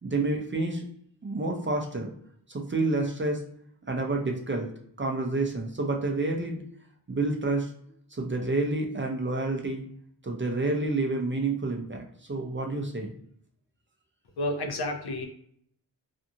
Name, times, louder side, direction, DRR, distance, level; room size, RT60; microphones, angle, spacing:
voice 1, 0.0-0.8 1.2-2.1 2.5-3.4 3.9-4.7 5.0-6.6 7.1-7.7 8.1-9.8 10.2-13.1, right 2 dB, 30° right, 1 dB, 0.5 m, -29 dB
voice 2, 14.4-15.3, left 1 dB, 65° left, 5 dB, 0.6 m, -30 dB
2.6 x 2.5 x 2.7 m, 0.66 s
wide cardioid pair, 100°, 41 cm